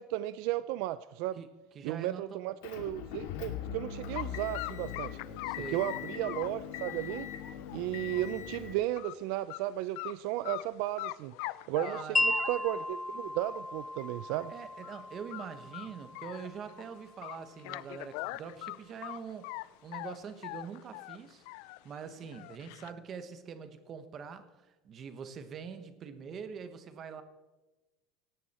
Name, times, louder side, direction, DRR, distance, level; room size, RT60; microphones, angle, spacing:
voice 1, 0.0-1.4 1.8-5.2 5.7-7.3 7.7-11.3 11.7-14.5, right 14 dB, 60° right, 15 dB, 0.5 m, -34 dB
voice 2, 1.4-2.5 5.4-5.8 11.8-12.2 14.5-27.2, right 6 dB, 25° right, 10 dB, 1.2 m, -44 dB
Motor vehicle (road) / Engine, 2.6-8.7, left 8 dB, 90° left, 2.6 m, -41 dB
sound 1, 4.1-4.3 4.5-8.4 8.7-9.1 9.5-9.6 10.0-10.7 11.0-12.9 13.5-13.6 14.0-14.1 14.4-14.5 14.8-15.1 15.3-16.8 17.2-19.7 19.9-21.8 22.2-22.9, left 20 dB, 65° left, 0.5 m, -42 dB
Wind chime, 12.2-18.2, left 1 dB, 10° left, 0.4 m, -36 dB
18.5 x 15.5 x 4.3 m, 1.1 s
cardioid pair, 180°, 0 cm